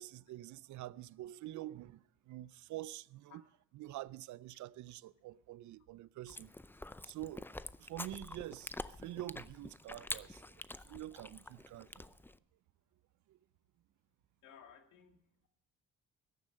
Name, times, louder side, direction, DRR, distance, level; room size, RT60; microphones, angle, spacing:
voice 1, 0.0-3.4 3.7-6.5 7.0-7.5 7.8-12.1 13.3-13.4, right 14 dB, 70° right, 0.5 m, -47 dB
Chewing mastication, 6.3-12.4, left 2 dB, 5° left, 0.5 m, -47 dB
voice 2, 14.4-15.5, left 8 dB, 85° left, 2.0 m, -59 dB
14.0 x 11.0 x 6.5 m
cardioid pair, 90°, 30 cm